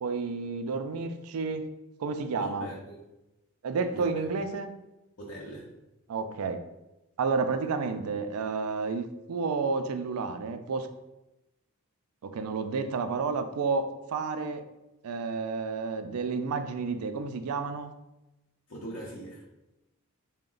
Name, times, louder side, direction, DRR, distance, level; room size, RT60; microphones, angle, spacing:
voice 1, 0.0-1.7 2.0-2.7 3.6-4.7 6.1-6.6 7.2-10.9 12.2-14.6 15.0-17.9, right 4 dB, 85° right, 9 dB, 0.4 m, -31 dB
voice 2, 2.4-3.0 3.9-4.1 5.2-5.7 18.7-19.5, right 1 dB, 65° left, -5 dB, 0.6 m, -41 dB
3.8 x 2.1 x 3.7 m, 0.96 s
head